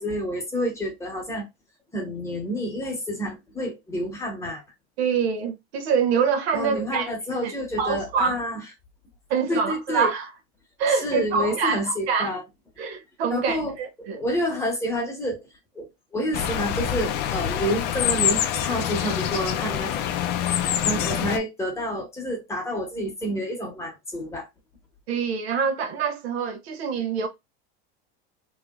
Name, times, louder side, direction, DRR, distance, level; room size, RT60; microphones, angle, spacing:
voice 1, 0.0-1.4 1.9-4.6 6.5-8.6 9.5-10.1 10.9-12.4 13.3-15.5 15.7-15.9 16.1-20.1 20.8-24.5, equal, 10° left, 1.0 m, -29 dB
voice 2, 5.0-7.1 7.4-7.5 7.8-8.4 9.3-10.3 10.8-12.3 12.8-14.2 25.1-27.3, right 6 dB, 90° right, 0.9 m, -25 dB
sound 1, 16.3-21.4, left 10 dB, 35° left, 0.4 m, -25 dB
3.1 x 2.9 x 2.3 m
supercardioid pair, 150°, 31 cm